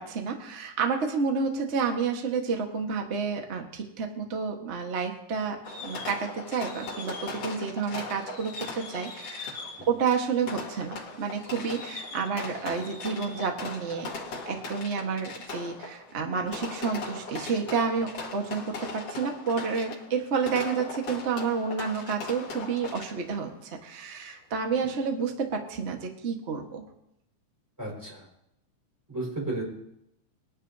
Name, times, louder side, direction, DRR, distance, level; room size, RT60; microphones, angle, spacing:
voice 1, 0.0-14.1 14.5-26.8, right 5 dB, 50° right, 3 dB, 0.7 m, -30 dB
Fireworks, 5.6-23.4, left 3 dB, 50° left, 2.7 m, -39 dB
voice 2, 27.8-28.3 29.1-29.6, right 2 dB, 5° right, -3 dB, 4.9 m, -33 dB
22.0 x 11.0 x 2.8 m, 0.80 s
omnidirectional pair, 3.8 m